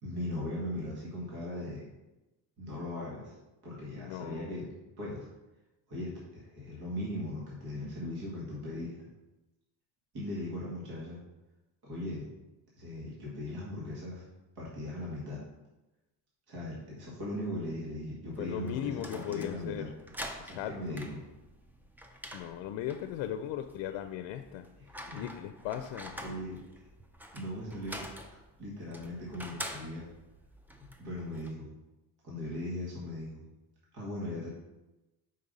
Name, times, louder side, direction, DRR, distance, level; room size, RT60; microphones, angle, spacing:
voice 1, 0.0-1.9 2.6-3.4 3.6-4.7 5.0-5.3 5.9-8.9 10.1-11.2 11.8-12.3 12.8-14.2 14.6-15.4 16.5-19.9 20.5-21.2 25.0-25.3 26.2-26.6 27.3-28.1 28.6-30.1 30.8-31.7 32.2-33.4 33.9-34.5, left 1 dB, 55° right, -6 dB, 2.0 m, -38 dB
voice 2, 4.0-4.6 18.4-19.8 20.4-21.0 22.3-24.6 25.1-26.2, left 11 dB, 85° left, 8 dB, 0.5 m, -37 dB
sound 1, 18.3-31.5, equal, 5° right, 0.3 m, -47 dB
5.3 x 5.3 x 4.0 m, 1.0 s
cardioid pair, 140°, 44 cm